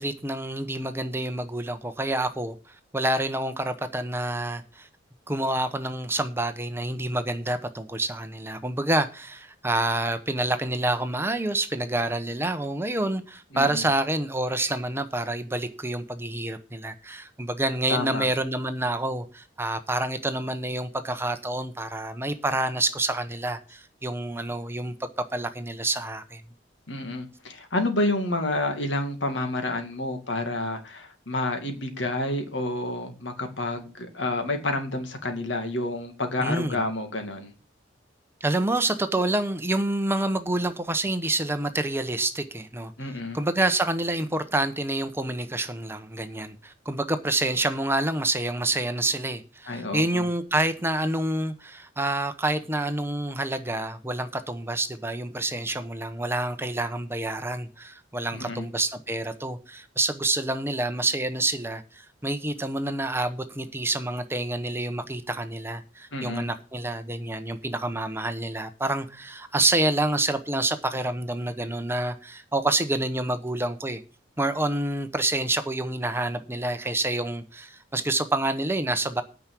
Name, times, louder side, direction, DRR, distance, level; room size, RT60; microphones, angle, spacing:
voice 1, 0.0-2.5 2.9-4.9 5.3-26.4 36.4-36.8 38.4-42.9 43.3-74.0 74.4-79.2, right 2 dB, 15° right, 0.9 m, -28 dB
voice 2, 17.9-18.2 26.9-37.5 43.0-43.4 49.7-50.3 58.3-58.7 66.1-66.5, left 2 dB, 75° left, 2.2 m, -29 dB
9.4 x 6.0 x 8.5 m
head